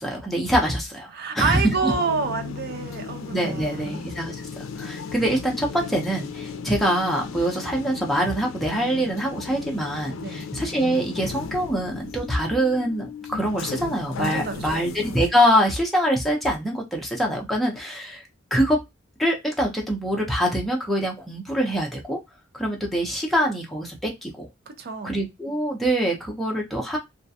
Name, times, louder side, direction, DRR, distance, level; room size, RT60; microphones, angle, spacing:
voice 1, 0.0-1.1 1.3-1.9 3.3-4.4 4.8-18.2 18.5-18.8 19.2-22.2 22.5-24.5 25.0-27.0, equal, ahead, 0.5 m, -24 dB
voice 2, 1.1-3.9 10.2-10.5 14.2-14.9 24.7-25.2, right 5 dB, 50° right, 0.4 m, -28 dB
sound 1, 1.8-15.3, left 5 dB, 80° left, 0.4 m, -36 dB
2.3 x 2.1 x 2.6 m
head